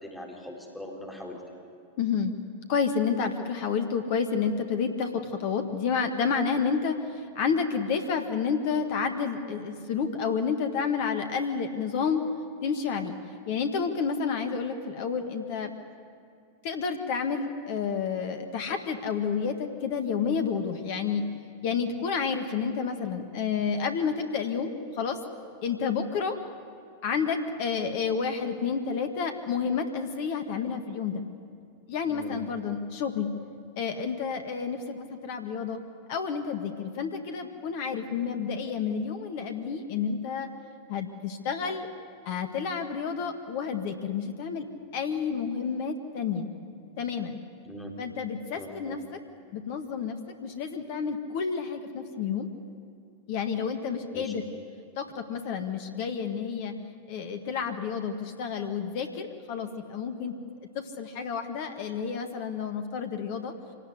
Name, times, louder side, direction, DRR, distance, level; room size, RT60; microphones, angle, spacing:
voice 1, 0.0-1.4 32.1-32.4 47.7-48.0 48.5-49.0 54.1-54.3, equal, 5° left, -1 dB, 4.0 m, -40 dB
voice 2, 2.0-2.4 2.7-12.3 12.6-13.2 13.5-15.7 16.6-21.3 21.6-25.2 25.6-26.4 27.0-31.2 31.9-33.3 33.8-35.8 36.1-40.5 40.9-41.9 42.2-44.7 44.9-46.5 47.0-47.4 48.0-49.0 49.5-52.5 53.3-54.4 55.0-56.7 57.1-60.3 60.7-63.5, left 6 dB, 50° left, 7 dB, 1.7 m, -30 dB
25.5 x 18.5 x 9.7 m, 2.4 s
figure-of-eight pair, 90°, 0 cm